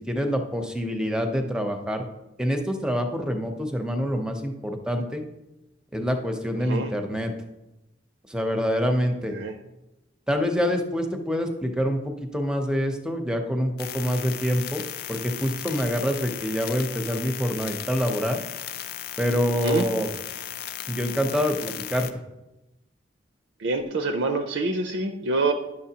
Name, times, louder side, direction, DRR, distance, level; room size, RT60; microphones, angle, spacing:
voice 1, 0.1-2.0 2.4-5.2 5.9-7.3 8.3-9.3 10.3-14.8 15.1-18.4 19.2-20.1 20.9-22.1, equal, 5° right, 4 dB, 0.7 m, -26 dB
sound 1, 13.8-22.1, left 10 dB, 55° left, 0.4 m, -36 dB
voice 2, 23.6-25.5, right 3 dB, 75° right, 6 dB, 0.5 m, -26 dB
10.0 x 6.4 x 2.8 m, 0.98 s
head